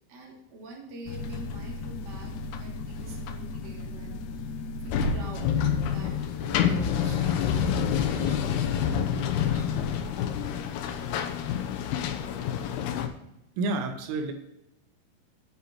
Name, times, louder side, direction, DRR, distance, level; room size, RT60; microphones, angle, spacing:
voice 1, 0.1-2.3 2.6-4.4 4.8-7.8 8.1-9.8 10.7-10.9, right 1 dB, 35° right, -2 dB, 1.7 m, -45 dB
sound 1, 1.1-13.1, left 7 dB, 90° left, 2.2 m, -29 dB
voice 2, 13.6-14.3, right 3 dB, 80° right, 5 dB, 3.6 m, -29 dB
8.7 x 5.6 x 7.7 m, 0.86 s
omnidirectional pair, 5.9 m